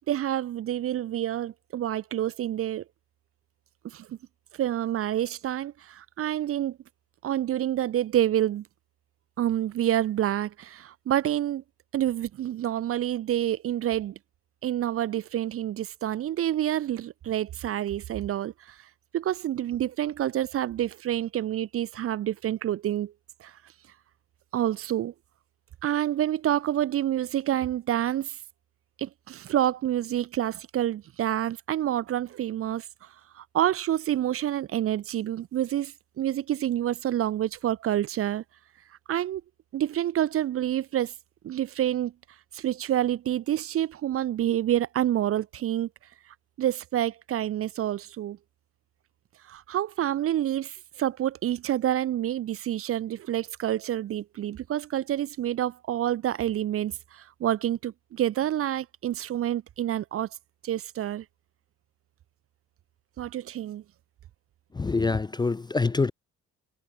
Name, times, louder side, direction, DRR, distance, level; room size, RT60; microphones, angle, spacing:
voice 1, 0.1-2.8 3.8-4.2 4.6-6.8 7.2-8.6 9.4-11.6 11.9-14.1 14.6-18.5 19.1-23.1 23.4-23.5 24.5-25.1 25.8-28.4 29.0-32.9 33.4-38.4 39.1-39.4 39.7-41.1 41.4-42.1 42.5-45.9 46.6-48.4 49.5-60.3 60.6-61.2 63.2-63.8, right 12 dB, 50° right, 0.5 m, -28 dB
voice 2, 64.7-66.1, left 3 dB, 15° left, 0.3 m, -25 dB
cardioid pair, 90°, 30 cm